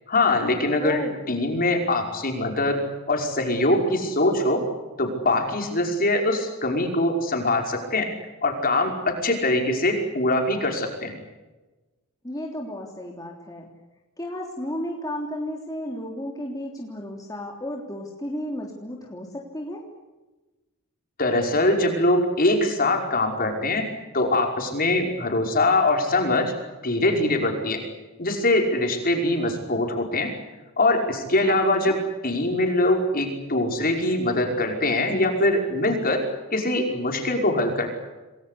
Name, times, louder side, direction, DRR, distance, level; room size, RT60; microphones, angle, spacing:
voice 1, 0.1-1.0 1.3-4.6 5.0-8.1 8.4-11.1 21.2-23.9 24.1-26.5 26.8-27.8 28.2-30.3 30.8-32.0 32.2-36.2 36.5-37.9, left 2 dB, 40° left, 3 dB, 5.5 m, -23 dB
voice 2, 0.8-1.2 12.2-13.7 14.2-19.8 31.5-32.0, left 1 dB, 15° left, 0 dB, 3.3 m, -33 dB
28.5 x 21.0 x 8.4 m, 1.2 s
head